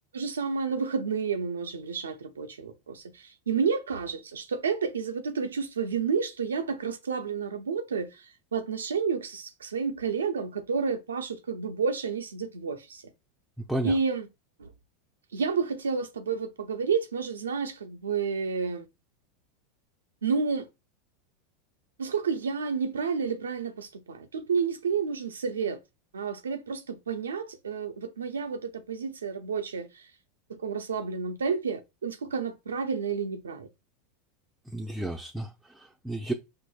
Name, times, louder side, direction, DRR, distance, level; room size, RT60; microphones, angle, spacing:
voice 1, 0.1-13.0 13.8-14.3 14.6-14.7 15.3-18.8 20.2-20.7 22.0-25.8 26.1-30.1 30.5-33.7, right 5 dB, 90° right, 0.5 m, -30 dB
voice 2, 34.7-36.3, right 1 dB, 5° right, 0.5 m, -32 dB
4.6 x 2.6 x 2.3 m
hypercardioid pair, 95°, 0 cm